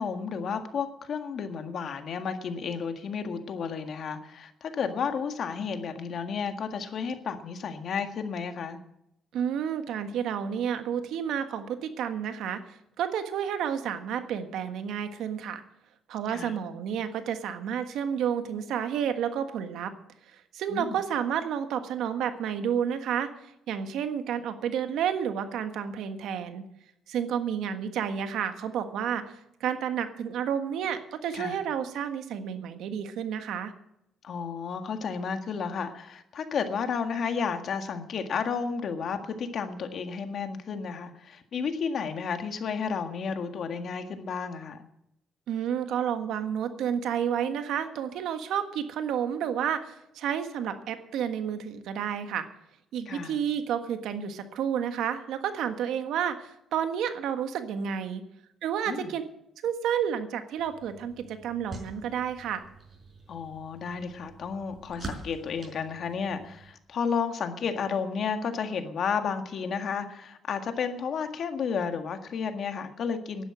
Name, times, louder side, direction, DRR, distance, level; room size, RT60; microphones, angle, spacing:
voice 1, 0.0-8.8 16.3-16.6 20.7-21.0 31.3-31.6 34.2-44.8 53.1-53.4 58.9-59.1 63.3-73.5, left 6 dB, 60° left, 7 dB, 1.7 m, -32 dB
voice 2, 9.3-15.6 16.1-19.9 20.3-23.3 23.7-26.6 27.1-33.7 45.5-52.5 52.9-58.2 58.6-59.2 59.6-62.6, right 8 dB, 80° right, 8 dB, 1.5 m, -30 dB
sound 1, 60.6-66.7, right 3 dB, 40° right, 5.4 m, -45 dB
11.0 x 10.5 x 8.8 m, 0.81 s
cardioid pair, 90°, 0 cm